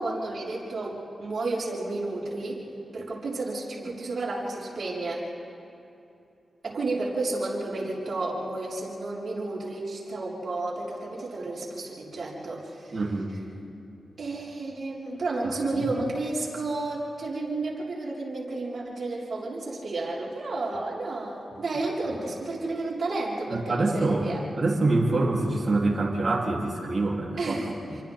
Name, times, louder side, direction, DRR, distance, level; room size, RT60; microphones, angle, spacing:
voice 1, 0.0-2.6 2.9-5.2 6.6-13.0 14.2-24.4 27.4-27.8, right 2 dB, 55° right, -6 dB, 5.3 m, -31 dB
voice 2, 12.9-13.3 23.5-24.3 24.6-27.4 27.9-28.0, right 2 dB, 40° right, -5 dB, 3.7 m, -25 dB
29.0 x 24.0 x 3.9 m, 2.7 s
cardioid pair, 90°, 0 cm